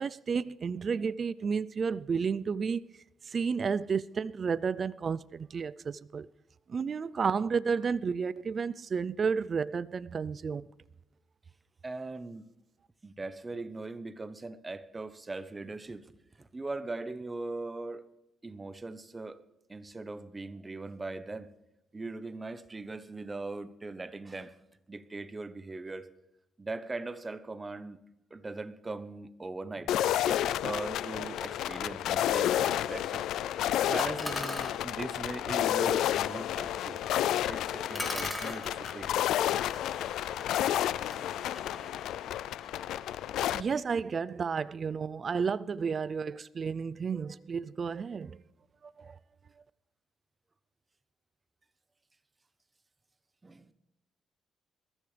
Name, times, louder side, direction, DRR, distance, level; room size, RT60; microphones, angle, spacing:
voice 1, 0.0-2.8 3.3-6.3 6.7-10.6 42.9-43.0 43.5-48.4 49.0-49.1, right 5 dB, 45° right, 0.4 m, -32 dB
voice 2, 11.8-12.5 13.0-16.1 16.4-18.1 18.4-19.4 19.7-21.5 21.9-24.5 24.9-26.1 26.6-28.0 28.3-33.3 33.8-37.0 37.5-39.2 53.4-53.7, right 3 dB, 25° right, 1.0 m, -40 dB
sound 1, 29.9-43.6, left 11 dB, 80° left, 0.4 m, -30 dB
sound 2, 34.0-34.8 37.4-37.5 37.9-42.8, left 1 dB, 15° left, 2.8 m, -41 dB
21.5 x 14.0 x 3.4 m
cardioid pair, 90°, 0 cm